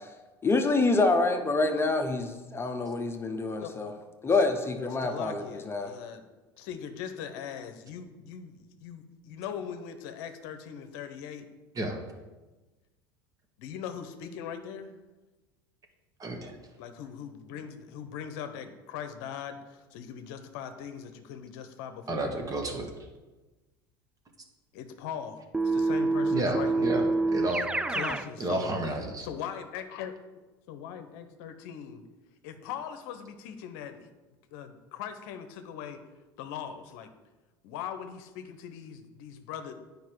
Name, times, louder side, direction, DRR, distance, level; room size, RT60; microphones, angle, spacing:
voice 1, 0.4-3.9 4.2-5.9, left 3 dB, 20° left, 5 dB, 1.0 m, -26 dB
voice 2, 5.0-6.2 6.6-11.5 13.6-14.9 16.8-22.3 24.7-26.9 27.5-28.7 29.2-30.1 30.7-32.0 32.4-34.1 34.5-36.0 36.4-37.1 37.6-39.7, left 8 dB, 65° left, 8 dB, 0.8 m, -40 dB
voice 3, 16.2-16.5 22.1-22.9 26.3-27.0 27.3-27.7 28.4-29.3, right 2 dB, 30° right, 3 dB, 1.6 m, -31 dB
Keyboard (musical), 25.5-28.3, right 3 dB, 5° right, 0.4 m, -27 dB
9.3 x 5.3 x 4.6 m, 1.2 s
hypercardioid pair, 80°, 12 cm